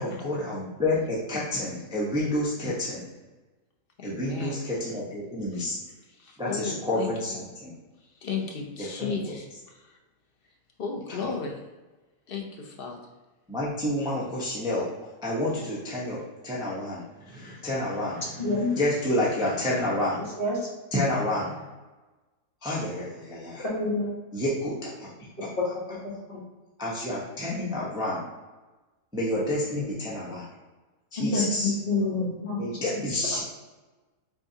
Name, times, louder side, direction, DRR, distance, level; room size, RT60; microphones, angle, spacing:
voice 1, 0.0-3.0 4.0-5.8 6.4-7.3 7.6-7.7 9.0-9.1 11.2-11.3 13.5-14.9 15.2-18.5 18.8-20.2 20.9-21.6 22.6-23.6 24.3-25.1 26.8-28.2 29.1-30.4 31.1-31.7 32.6-33.4, left 1 dB, 5° right, -7 dB, 0.8 m, -29 dB
voice 2, 4.0-4.6 5.5-5.6 6.1-7.4 8.2-10.0 10.8-11.6 12.3-13.0, left 5 dB, 60° left, 1 dB, 0.6 m, -35 dB
voice 3, 18.4-18.8 20.4-20.6 23.6-24.1 25.6-25.7 26.0-26.4 31.2-32.6 32.9-33.0, left 2 dB, 35° left, -6 dB, 1.6 m, -27 dB
4.8 x 3.8 x 2.8 m, 1.2 s
omnidirectional pair, 1.7 m